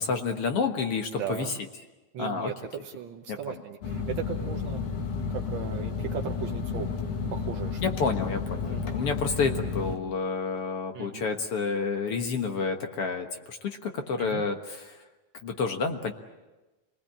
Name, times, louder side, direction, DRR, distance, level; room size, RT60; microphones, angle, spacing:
voice 1, 0.0-1.6 2.2-2.5 3.3-3.6 7.8-15.0 15.4-16.1, left 4 dB, 55° left, 5 dB, 2.1 m, -29 dB
voice 2, 1.1-1.5 2.1-4.8 5.3-7.0 7.3-7.8 8.6-8.9 10.9-11.2 14.2-14.4, right 9 dB, 65° right, 3 dB, 1.2 m, -37 dB
sound 1, 3.8-10.0, left 5 dB, 80° left, 3.5 m, -32 dB
28.0 x 20.0 x 8.7 m, 1.1 s
omnidirectional pair, 3.5 m